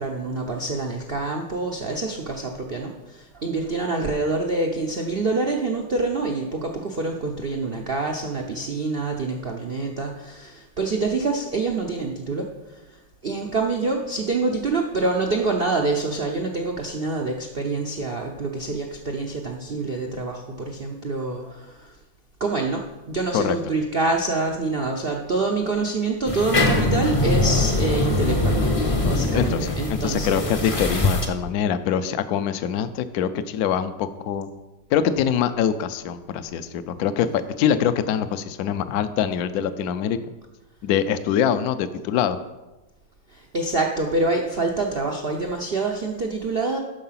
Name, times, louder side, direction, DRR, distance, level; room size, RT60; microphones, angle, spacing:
voice 1, 0.0-22.0 22.4-28.7 29.1-30.7 41.0-41.1 43.3-46.8, right 3 dB, 80° right, 2 dB, 0.5 m, -26 dB
sound 1, 26.3-31.3, left 1 dB, 40° left, 0.4 m, -22 dB
voice 2, 29.0-34.5 34.9-40.2 40.8-42.4, left 8 dB, 70° left, 12 dB, 0.9 m, -24 dB
12.0 x 4.7 x 5.7 m, 1.1 s
omnidirectional pair, 2.1 m